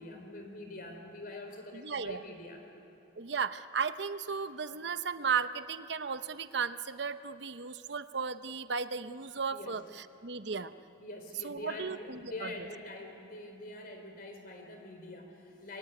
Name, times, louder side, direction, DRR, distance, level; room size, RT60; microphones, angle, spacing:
voice 1, 0.0-2.6 9.5-9.7 11.0-15.8, left 2 dB, 50° left, 4 dB, 4.3 m, -45 dB
voice 2, 1.7-2.2 3.2-10.7 11.4-12.5, right 5 dB, 65° right, 11 dB, 0.9 m, -35 dB
28.0 x 22.5 x 9.5 m, 2.8 s
head